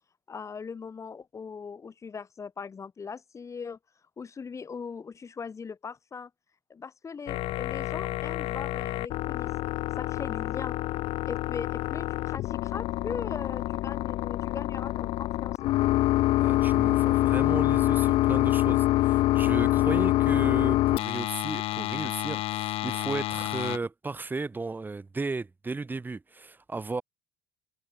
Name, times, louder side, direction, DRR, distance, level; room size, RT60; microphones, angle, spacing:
voice 1, 0.3-3.8 4.2-6.3 6.7-9.5 10.0-10.8 11.3-15.8, left 5 dB, 30° left, 2.4 m, -40 dB
sound 1, 7.3-23.8, left 16 dB, 65° left, 0.5 m, -26 dB
voice 2, 16.4-27.0, right 3 dB, 20° right, 2.0 m, -35 dB
cardioid pair, 105°, 10 cm